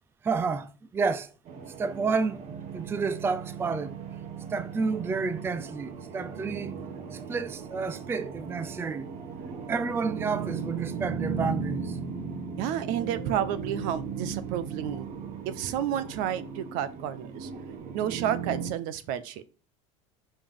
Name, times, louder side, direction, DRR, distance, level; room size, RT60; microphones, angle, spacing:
voice 1, 0.2-1.3 1.8-2.4 2.7-4.0 4.5-6.7 7.1-9.1 9.7-12.0, right 4 dB, 15° right, 0.4 m, -30 dB
sound 1, 1.5-18.7, right 6 dB, 45° right, 1.1 m, -37 dB
voice 2, 12.6-15.1 15.5-17.5 17.9-19.4, right 10 dB, 65° right, 0.7 m, -31 dB
5.4 x 5.1 x 3.6 m
supercardioid pair, 130°, 15 cm